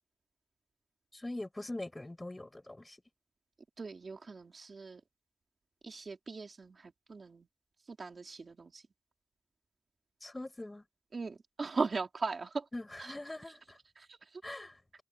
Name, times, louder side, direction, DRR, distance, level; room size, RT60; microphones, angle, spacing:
voice 1, 1.1-3.0 10.2-10.8 12.7-13.8 14.4-15.0, left 2 dB, 20° left, 7.3 m, -43 dB
voice 2, 3.8-5.0 5.8-7.5 7.9-8.8 11.1-12.7 13.0-13.1 13.9-14.5, right 4 dB, 50° right, 3.3 m, -39 dB
wide cardioid pair, 100°, 0 cm